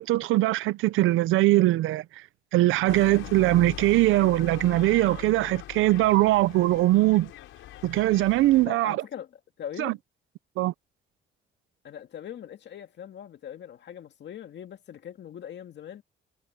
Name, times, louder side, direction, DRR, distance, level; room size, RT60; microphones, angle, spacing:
voice 1, 0.0-2.0 2.5-7.3 7.8-9.0 9.8-9.9 10.6-10.7, right 17 dB, 90° right, 0.6 m, -21 dB
sound 1, 2.9-8.7, left 14 dB, 90° left, 5.8 m, -42 dB
voice 2, 8.7-10.0 11.8-16.0, left 9 dB, 65° left, 2.1 m, -41 dB
cardioid pair, 90°, 20 cm